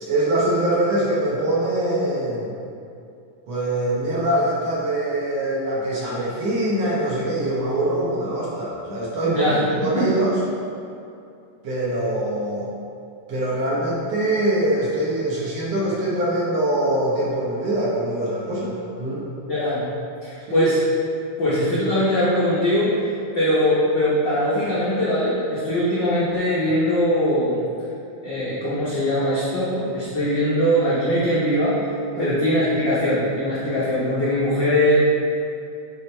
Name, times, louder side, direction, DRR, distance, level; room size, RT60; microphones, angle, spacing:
voice 1, 0.0-2.5 3.5-9.5 9.8-10.4 11.6-12.7 13.3-19.3 20.5-20.7 21.4-21.5 32.1-32.4, right 1 dB, 65° right, -6 dB, 1.7 m, -23 dB
voice 2, 9.2-9.6 9.9-10.0 19.4-19.8 20.2-20.8 21.4-22.9 23.3-27.6 28.2-31.8 32.2-35.0, equal, 90° left, -10 dB, 0.9 m, -21 dB
7.9 x 3.6 x 4.3 m, 2.6 s
omnidirectional pair, 3.9 m